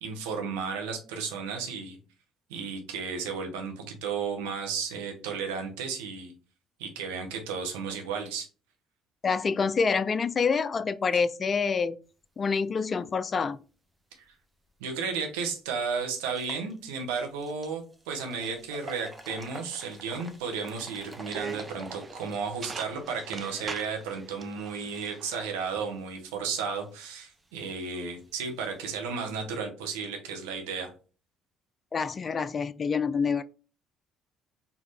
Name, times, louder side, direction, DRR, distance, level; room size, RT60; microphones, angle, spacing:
voice 1, 0.0-2.0 2.5-6.3 6.8-8.5 14.8-30.9, right 5 dB, 75° right, 1.0 m, -33 dB
voice 2, 9.2-12.0 12.4-13.6 31.9-33.4, left 5 dB, 40° left, 0.3 m, -27 dB
sound 1, 15.0-15.1 15.5-15.6 16.2-29.0, right 1 dB, 20° right, 0.9 m, -50 dB
sound 2, 20.5-25.5, right 4 dB, 35° right, 0.5 m, -42 dB
4.6 x 2.8 x 3.3 m
hypercardioid pair, 50°, 0 cm